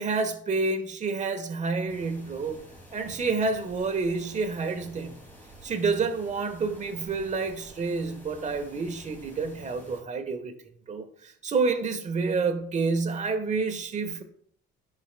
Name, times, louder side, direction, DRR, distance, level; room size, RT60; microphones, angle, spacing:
voice 1, 0.0-2.6 2.9-5.2 5.6-10.5 10.9-14.2, right 4 dB, 35° right, 6 dB, 1.1 m, -29 dB
sound 1, 1.9-10.0, equal, 10° left, 2.2 m, -50 dB
11.0 x 4.7 x 2.2 m, 0.62 s
cardioid pair, 100°, 21 cm